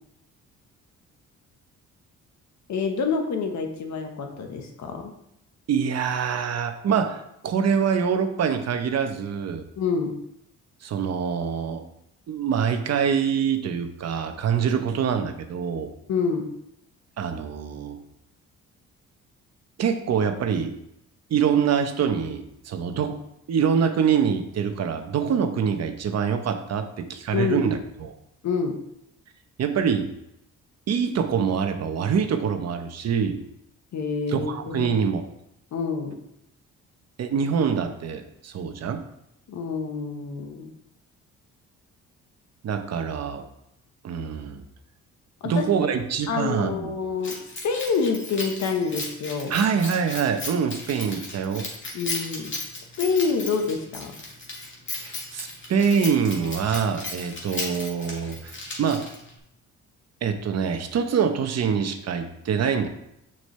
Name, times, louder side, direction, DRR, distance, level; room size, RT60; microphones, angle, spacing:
voice 1, 2.7-5.1 9.8-10.1 16.1-16.5 27.3-27.7 28.4-28.8 33.9-34.9 35.7-36.1 39.5-40.7 45.4-45.9 46.3-47.4 47.6-49.6 51.9-52.5 53.0-54.1, left 5 dB, 65° left, 4 dB, 1.3 m, -27 dB
voice 2, 5.7-9.7 10.8-11.8 12.3-15.9 17.2-18.0 19.8-20.7 21.3-23.2 23.5-28.2 29.6-30.1 30.9-33.4 34.3-35.2 37.2-39.0 42.6-43.4 44.0-44.6 45.4-46.9 49.5-51.7 55.0-59.1 60.2-62.9, right 7 dB, 60° right, 7 dB, 0.9 m, -25 dB
Keys jangling, 47.2-59.4, left 2 dB, 40° left, 2.2 m, -36 dB
7.2 x 6.4 x 3.3 m, 0.79 s
cardioid pair, 90°, 30 cm